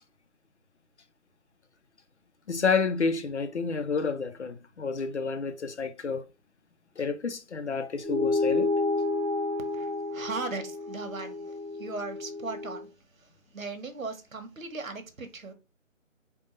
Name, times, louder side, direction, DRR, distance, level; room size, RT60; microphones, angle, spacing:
voice 1, 2.5-6.2 7.0-8.7, left 5 dB, 60° left, 0.6 m, -29 dB
sound 1, 8.0-12.8, left 2 dB, 15° right, 0.9 m, -30 dB
voice 2, 9.7-15.5, right 3 dB, 80° right, 1.1 m, -38 dB
3.7 x 2.3 x 3.9 m
figure-of-eight pair, 170°, 40 cm